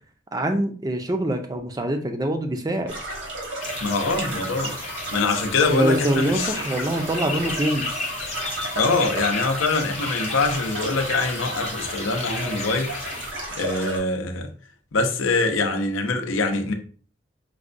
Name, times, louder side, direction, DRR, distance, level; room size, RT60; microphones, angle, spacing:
voice 1, 0.3-2.9 5.6-8.1, right 1 dB, 20° right, 0.4 m, -25 dB
sound 1, 2.9-14.0, right 2 dB, 70° right, 1.2 m, -33 dB
sound 2, 3.6-13.3, left 4 dB, 35° left, 0.5 m, -34 dB
voice 2, 3.8-4.8 5.1-6.6 8.7-13.1 13.6-14.5 14.9-16.7, left 3 dB, 85° left, 0.6 m, -24 dB
4.7 x 2.2 x 2.5 m
head